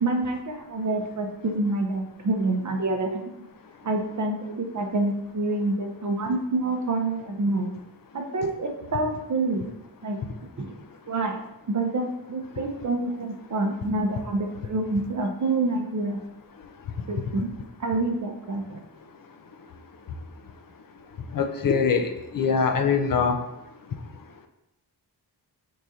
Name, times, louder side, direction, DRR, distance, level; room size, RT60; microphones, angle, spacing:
voice 1, 0.0-3.4 3.8-7.7 8.1-9.7 10.0-10.2 10.6-10.7 11.1-11.4 11.7-16.2 17.1-17.5 17.8-18.8, right 2 dB, 45° right, 4 dB, 0.6 m, -27 dB
voice 2, 21.3-23.4, left 5 dB, 55° left, 7 dB, 0.5 m, -23 dB
4.7 x 2.5 x 4.1 m, 0.89 s
wide cardioid pair, 125°, 42 cm